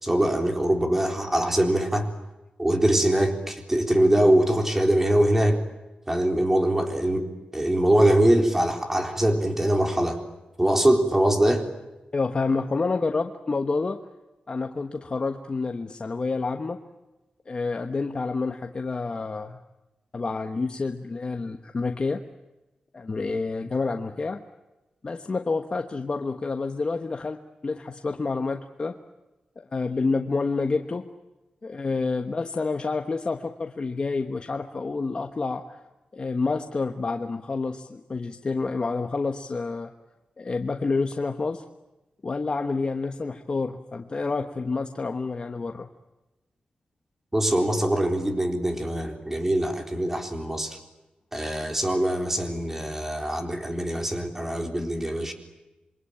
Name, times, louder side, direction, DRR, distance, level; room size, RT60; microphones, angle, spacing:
voice 1, 0.0-2.1 2.6-5.6 6.1-7.2 7.5-10.2 10.6-11.6 47.3-50.8 51.3-55.3, right 1 dB, 15° right, 4 dB, 4.0 m, -23 dB
voice 2, 12.1-14.0 14.5-16.8 17.5-19.6 20.1-22.2 22.9-24.4 25.0-27.4 27.6-29.0 29.7-31.1 31.6-35.8 36.1-39.9 40.4-41.6 42.2-45.9, left 3 dB, 35° left, 5 dB, 1.3 m, -28 dB
28.0 x 23.0 x 8.9 m, 1.0 s
wide cardioid pair, 140°, 3 cm